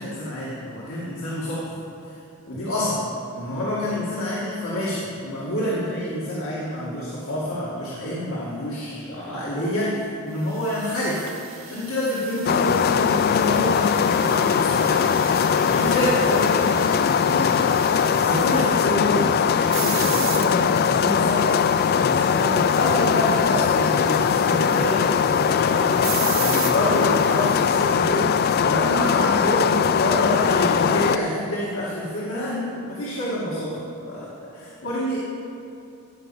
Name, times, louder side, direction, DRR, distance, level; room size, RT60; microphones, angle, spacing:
voice 1, 0.0-1.8 2.0-2.1 2.5-3.0 3.3-15.1 15.6-17.8 18.1-35.2, left 1 dB, 90° left, -7 dB, 2.2 m, -27 dB
sound 1, 10.5-27.9, right 9 dB, 75° right, 1.2 m, -37 dB
sound 2, 12.5-31.2, left 7 dB, 50° left, 0.3 m, -20 dB
16.5 x 5.5 x 7.0 m, 2.7 s
head